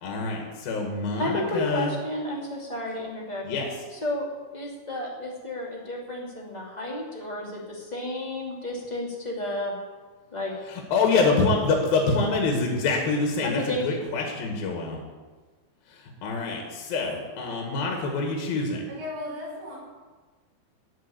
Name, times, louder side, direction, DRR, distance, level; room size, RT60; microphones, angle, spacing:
voice 1, 0.0-1.9 3.5-3.7 10.9-15.0 15.9-18.8, left 3 dB, 65° left, 1 dB, 3.4 m, -26 dB
voice 2, 1.2-3.4 3.9-9.8 10.3-10.5 13.4-14.0, left 1 dB, 15° left, -2 dB, 1.3 m, -32 dB
voice 3, 18.9-19.8, left 2 dB, 60° right, -5 dB, 6.7 m, -36 dB
16.0 x 5.6 x 9.9 m, 1.3 s
omnidirectional pair, 4.9 m